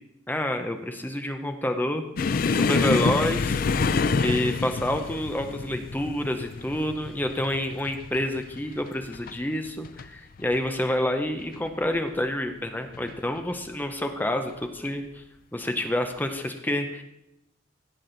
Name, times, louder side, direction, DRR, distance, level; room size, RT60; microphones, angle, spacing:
voice 1, 0.3-3.6 4.2-15.2 15.5-17.0, left 1 dB, 10° left, 6 dB, 0.6 m, -28 dB
sound 1, 2.2-9.4 9.7-10.1 10.4-10.6 11.4-12.0 12.9-13.1 14.5-14.7, left 4 dB, 45° left, 0.4 m, -27 dB
16.5 x 6.0 x 4.0 m, 0.87 s
head